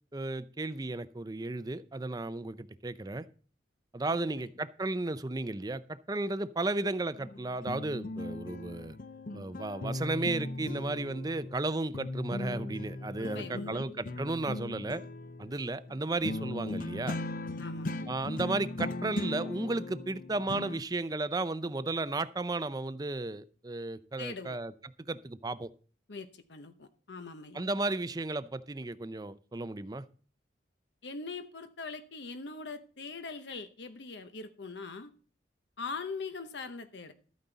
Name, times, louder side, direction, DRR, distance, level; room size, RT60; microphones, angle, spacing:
voice 1, 0.1-3.3 3.9-9.0 9.3-15.0 15.4-17.2 18.1-24.7 25.1-25.7 27.5-30.0, right 2 dB, 20° right, 0.5 m, -34 dB
voice 2, 4.1-4.5 13.2-13.8 17.6-18.1 24.2-24.6 26.1-27.6 31.0-35.1 35.8-37.1, left 4 dB, 75° left, 0.9 m, -42 dB
sound 1, 7.2-11.7 11.9-20.8, left 2 dB, 50° left, 0.6 m, -38 dB
13.0 x 9.3 x 4.0 m
head